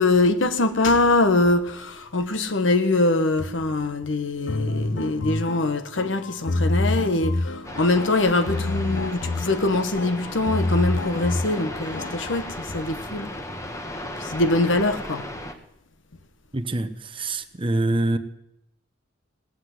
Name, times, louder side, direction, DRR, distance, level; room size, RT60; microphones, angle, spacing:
voice 1, 0.0-13.3 14.2-15.3, left 2 dB, 90° left, 1.1 m, -23 dB
sound 1, 4.5-12.4, left 2 dB, 65° left, 0.7 m, -28 dB
sound 2, 7.6-15.5, left 1 dB, 15° left, 1.1 m, -36 dB
voice 2, 16.5-18.2, right 2 dB, 30° right, 0.8 m, -25 dB
18.0 x 8.0 x 7.8 m
head